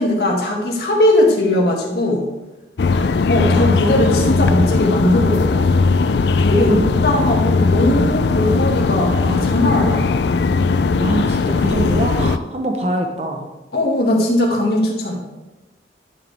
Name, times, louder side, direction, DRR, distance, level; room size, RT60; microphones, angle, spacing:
voice 1, 0.0-2.2 3.3-5.6 6.4-10.1 13.7-15.2, left 1 dB, 65° left, -1 dB, 2.0 m, -19 dB
sound 1, 2.8-12.4, left 4 dB, 80° left, 0.4 m, -18 dB
voice 2, 3.4-4.4 6.5-6.9 8.5-8.7 11.0-13.5, right 1 dB, 35° right, 2 dB, 0.9 m, -24 dB
11.5 x 6.6 x 3.5 m, 1.0 s
head